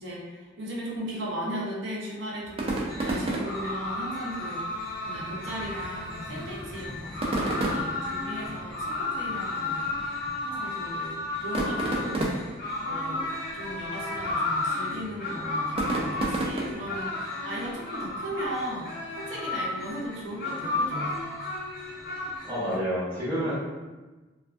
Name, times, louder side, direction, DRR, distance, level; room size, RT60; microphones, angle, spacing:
voice 1, 0.0-9.8 10.4-12.3 12.8-13.3 13.5-21.2, equal, 65° right, -4 dB, 0.7 m, -37 dB
sound 1, 2.4-17.0, right 2 dB, 30° right, 0.4 m, -34 dB
sound 2, 2.9-22.8, left 2 dB, 50° left, 0.5 m, -33 dB
voice 2, 22.4-23.5, equal, 15° right, -13 dB, 0.8 m, -28 dB
2.4 x 2.4 x 2.3 m, 1.2 s
head